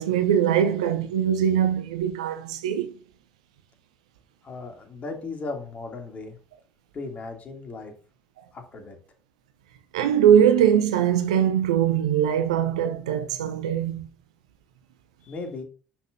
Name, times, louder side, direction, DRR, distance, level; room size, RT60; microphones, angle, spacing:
voice 1, 0.0-2.9 9.9-14.1, right 9 dB, 70° right, 0.7 m, -21 dB
voice 2, 4.4-6.4 6.9-7.9 8.5-9.0 15.2-15.6, left 3 dB, 40° left, 2.8 m, -36 dB
10.0 x 6.4 x 2.7 m
figure-of-eight pair, 55°, 4 cm